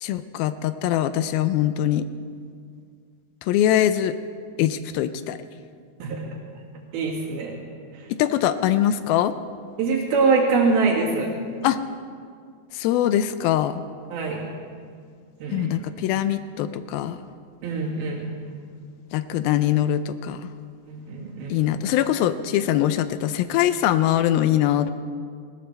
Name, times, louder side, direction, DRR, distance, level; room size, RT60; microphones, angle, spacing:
voice 1, 0.0-2.0 3.4-4.2 4.6-5.4 8.1-9.3 11.6-11.8 12.7-13.8 15.5-17.2 19.1-20.4 21.5-24.9, left 11 dB, 80° left, 12 dB, 2.3 m, -22 dB
voice 2, 6.9-7.6 9.8-11.3 14.1-14.4 15.4-15.7 17.6-18.3 20.9-21.6, right 4 dB, 75° right, -2 dB, 3.9 m, -23 dB
20.0 x 17.0 x 3.3 m, 2.1 s
omnidirectional pair, 4.4 m